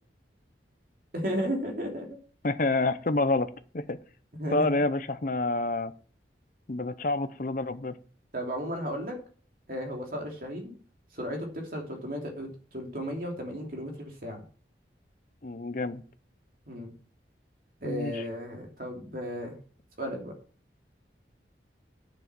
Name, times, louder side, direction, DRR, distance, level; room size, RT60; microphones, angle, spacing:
voice 1, 1.1-2.1 4.3-4.7 8.3-9.2 9.7-10.7 11.1-14.4 16.7-16.9 17.8-19.5 20.0-20.3, equal, 50° right, 1 dB, 3.0 m, -34 dB
voice 2, 2.4-4.0 4.5-5.9 6.7-7.9 15.4-16.0 17.8-18.2, left 2 dB, 45° left, 12 dB, 0.8 m, -28 dB
9.7 x 6.2 x 6.2 m, 0.42 s
head